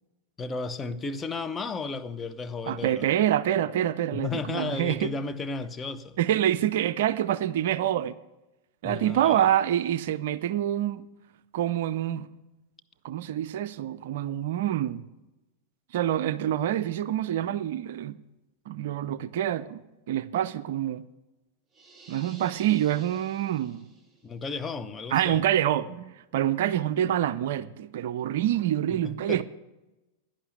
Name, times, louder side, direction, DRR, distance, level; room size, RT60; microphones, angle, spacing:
voice 1, 0.4-3.1 4.1-6.2 8.8-9.5 24.2-25.4 28.9-29.4, left 4 dB, 15° left, 0.9 m, -34 dB
voice 2, 2.7-5.1 6.2-8.2 8.8-11.0 11.5-12.3 13.0-15.0 15.9-18.1 18.7-19.8 20.1-21.1 22.1-23.9 25.1-29.4, right 11 dB, 55° right, 0.5 m, -26 dB
sound 1, 21.7-24.3, right 3 dB, 10° right, 3.5 m, -51 dB
11.5 x 10.5 x 8.0 m
figure-of-eight pair, 90°, 0 cm